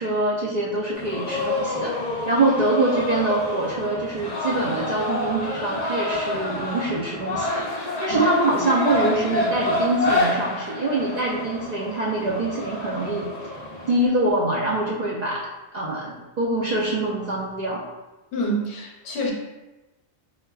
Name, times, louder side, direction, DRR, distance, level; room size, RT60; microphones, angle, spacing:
voice 1, 0.0-13.3 13.9-15.4 15.7-17.8, right 2 dB, 60° right, -5 dB, 0.4 m, -24 dB
sound 1, 0.9-14.1, left 1 dB, 55° left, 0.5 m, -28 dB
voice 2, 18.3-19.3, right 1 dB, 75° left, -1 dB, 0.9 m, -27 dB
4.3 x 2.2 x 2.2 m, 1.1 s
omnidirectional pair, 1.1 m